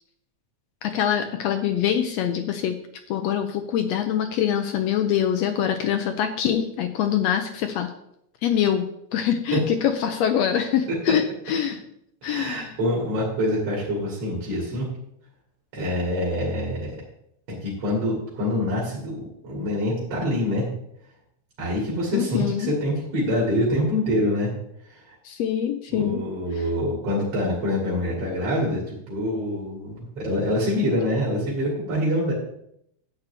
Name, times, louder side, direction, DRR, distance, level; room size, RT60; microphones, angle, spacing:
voice 1, 0.8-2.8 3.1-7.9 8.4-11.8 12.2-12.7 22.1-22.7 25.3-26.2, left 9 dB, 75° left, 7 dB, 1.7 m, -24 dB
voice 2, 12.2-14.9 15.7-17.0 17.5-20.7 21.6-24.5 24.8-25.2 25.9-32.3, left 1 dB, 55° right, -4 dB, 3.4 m, -25 dB
11.5 x 8.4 x 3.4 m, 0.75 s
omnidirectional pair, 3.3 m